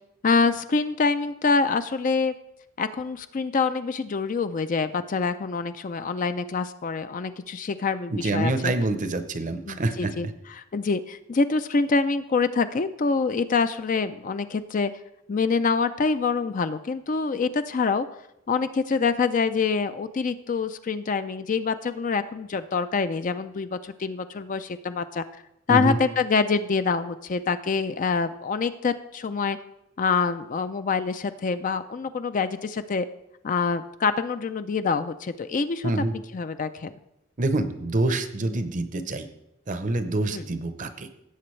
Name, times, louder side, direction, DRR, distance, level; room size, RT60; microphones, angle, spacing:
voice 1, 0.2-2.3 2.8-8.7 9.7-14.9 15.3-18.1 18.5-25.2 25.7-29.6 30.0-33.1 33.4-36.9 40.3-40.5, left 4 dB, 35° left, 11 dB, 0.4 m, -26 dB
voice 2, 8.1-10.1 25.7-26.0 35.8-36.1 37.4-39.3 39.7-41.1, right 2 dB, 35° right, 10 dB, 0.7 m, -26 dB
17.0 x 7.7 x 3.2 m, 0.85 s
head